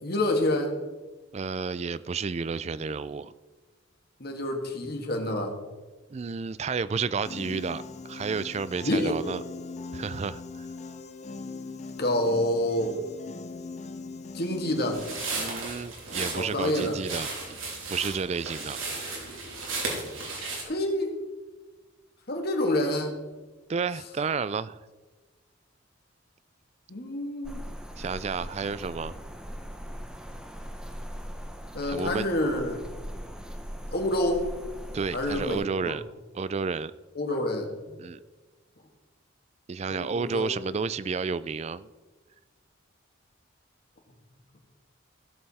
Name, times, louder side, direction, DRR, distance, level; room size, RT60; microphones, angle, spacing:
voice 1, 0.0-0.7 4.2-5.6 8.8-9.1 12.0-12.9 14.3-15.0 16.3-17.0 20.7-21.1 22.3-23.1 26.9-27.6 31.7-32.8 33.9-34.5 35.1-35.9 37.1-37.7 39.9-40.6, left 1 dB, 50° left, 3 dB, 1.7 m, -27 dB
voice 2, 1.3-3.3 6.1-9.4 9.9-10.7 15.4-17.6 17.9-18.8 23.7-24.8 28.0-29.1 31.8-32.3 34.9-36.0 36.3-36.9 38.0-38.2 39.7-41.9, right 5 dB, 35° right, 17 dB, 0.3 m, -31 dB
Piano, 7.2-15.3, left 3 dB, 35° left, 0.6 m, -40 dB
sound 1, 14.9-20.6, right 3 dB, 90° right, 3.1 m, -35 dB
sound 2, 27.4-35.6, equal, 5° right, 0.7 m, -40 dB
16.5 x 6.8 x 4.2 m, 1.3 s
head